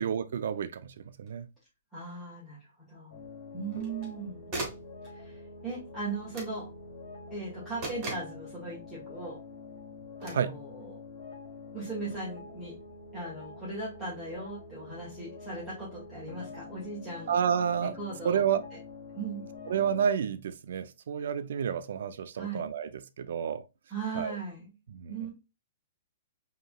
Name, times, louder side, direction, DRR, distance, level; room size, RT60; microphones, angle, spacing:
voice 1, 0.0-1.5 10.3-10.6 17.3-18.0 18.2-18.6 19.7-23.6 24.1-24.4 24.9-25.3, right 8 dB, 70° right, 0.4 m, -30 dB
sound 1, 1.3-1.4 3.7-4.1 4.5-4.9 6.3-6.6 7.8-8.4 10.2-10.5, right 2 dB, 25° right, 1.7 m, -38 dB
voice 2, 1.9-3.2 3.5-4.5 5.1-5.4 5.6-6.7 7.3-9.4 10.2-11.0 11.7-12.7 13.1-17.3 18.0-18.4 19.2-19.4 22.3-22.6 23.9-24.7 25.1-25.3, right 3 dB, ahead, 1.4 m, -38 dB
sound 2, 3.1-20.1, left 3 dB, 45° left, 1.8 m, -46 dB
5.0 x 3.0 x 2.3 m
hypercardioid pair, 160°, 0 cm